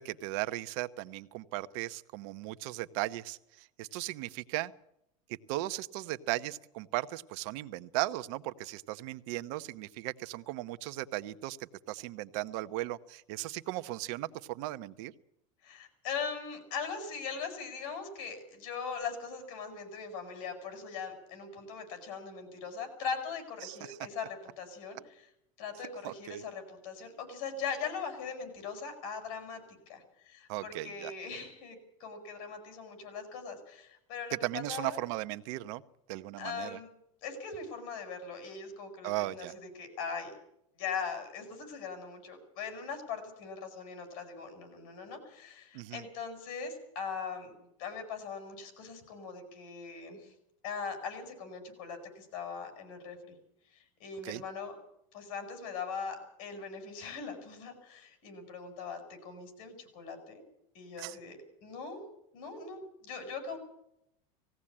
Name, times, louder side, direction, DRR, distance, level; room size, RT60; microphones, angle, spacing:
voice 1, 0.0-4.7 5.3-11.6 11.9-15.1 23.6-24.0 26.0-26.4 30.5-31.1 34.4-35.8 36.1-36.8 39.0-39.5 45.7-46.0 54.2-54.4 61.0-61.2, right 17 dB, 60° right, 13 dB, 1.0 m, -37 dB
voice 2, 15.6-25.3 25.6-29.6 29.9-35.0 36.4-36.9 37.2-39.5 39.7-40.3 40.8-47.5 47.8-50.3 50.6-53.3 53.7-54.7 55.1-60.4 60.7-62.0 62.3-63.6, left 5 dB, 60° left, 8 dB, 7.9 m, -40 dB
19.5 x 16.5 x 8.7 m, 0.78 s
supercardioid pair, 145°, 17 cm